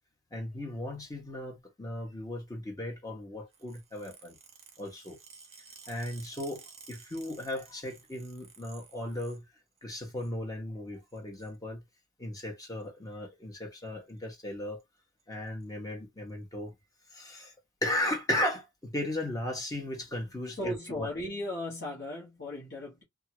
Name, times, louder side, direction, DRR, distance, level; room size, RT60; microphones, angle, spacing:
voice 1, 0.3-4.4 4.8-5.2 5.8-9.4 9.8-11.8 12.2-14.8 15.3-16.7 17.1-17.5 17.8-21.1, left 1 dB, 20° left, 1.1 m, -36 dB
sound 1, 3.5-9.4 9.8-10.3 11.1-11.5 12.6-12.9 13.8-14.1 14.4-14.5 14.8-14.9 15.2-15.7 16.3-16.4 17.3-17.4, right 5 dB, 30° right, 0.8 m, -54 dB
voice 2, 20.6-23.0, left 1 dB, 55° left, 1.1 m, -36 dB
2.7 x 2.4 x 2.9 m
head